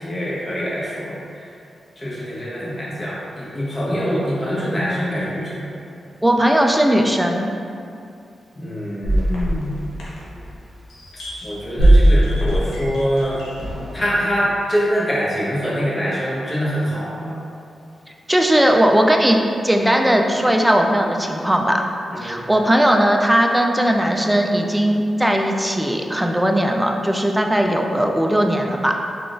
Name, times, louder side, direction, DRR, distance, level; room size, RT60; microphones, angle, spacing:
voice 1, 0.0-1.5 2.0-5.7 8.5-9.8 11.1-13.4 13.9-17.4 22.1-22.4, equal, 30° left, -7 dB, 0.9 m, -24 dB
voice 2, 6.2-7.5 18.3-21.8 22.2-29.0, equal, 10° right, 2 dB, 0.3 m, -18 dB
sound 1, 9.0-10.6 11.0-14.0, right 1 dB, 90° left, 0.6 m, -19 dB
3.5 x 2.4 x 2.5 m, 2.5 s
cardioid pair, 55°, 0 cm